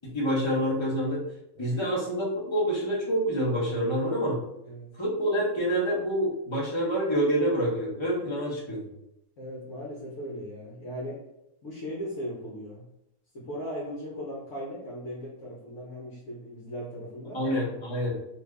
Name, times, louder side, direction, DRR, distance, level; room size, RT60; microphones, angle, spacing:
voice 1, 0.0-1.2 1.6-4.3 5.0-8.9 17.3-18.1, equal, 25° left, -4 dB, 0.8 m, -27 dB
voice 2, 9.4-11.2 11.6-12.9 13.3-17.4, equal, 65° left, -5 dB, 1.1 m, -38 dB
2.7 x 2.5 x 3.4 m, 0.83 s
omnidirectional pair, 1.5 m